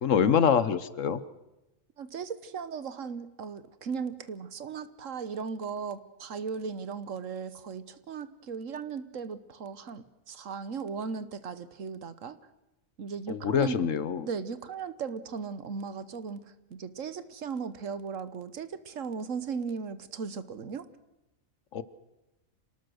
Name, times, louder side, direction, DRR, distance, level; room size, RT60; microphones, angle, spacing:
voice 1, 0.0-1.2 13.3-14.3 21.7-21.8, left 7 dB, 65° left, 15 dB, 1.3 m, -25 dB
voice 2, 2.0-12.4 13.0-13.8 14.3-16.4 16.7-20.9, right 5 dB, 65° right, 14 dB, 1.4 m, -37 dB
27.0 x 18.5 x 6.4 m, 0.96 s
omnidirectional pair, 1.4 m